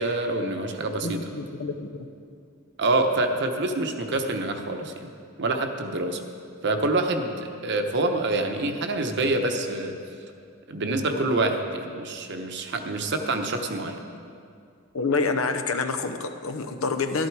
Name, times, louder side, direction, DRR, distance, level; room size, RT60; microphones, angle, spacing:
voice 1, 0.0-1.2 2.8-5.1 5.4-6.2 6.6-10.0 10.7-14.0, right 2 dB, 55° right, 5 dB, 1.0 m, -26 dB
voice 2, 1.0-2.1 14.9-17.3, left 4 dB, 75° left, 8 dB, 0.8 m, -27 dB
12.5 x 11.5 x 4.7 m, 2.4 s
head